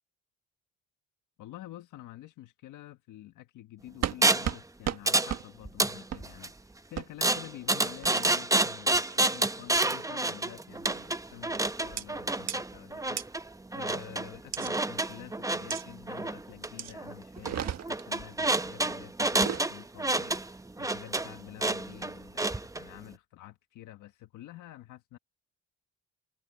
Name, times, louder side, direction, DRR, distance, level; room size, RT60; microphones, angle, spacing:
voice 1, 1.4-25.2, left 14 dB, 90° left, 1.5 m, -49 dB
sound 1, 4.0-4.2 4.4-4.6 4.8-5.0 5.3-5.4 6.1-6.2 7.0-7.1 8.0-8.4 8.9-9.3 9.8-10.1 10.9-11.1 12.0-12.1 12.5-12.6 13.2-13.3 14.5-14.7 15.7-15.8 16.8-16.9 17.3-18.1 19.2-19.7, right 9 dB, 60° right, 1.6 m, -35 dB
sound 2, 4.2-4.5 5.1-5.4 5.6-6.5 7.2-22.8, right 2 dB, 10° right, 0.9 m, -29 dB
cardioid pair, 90°, 30 cm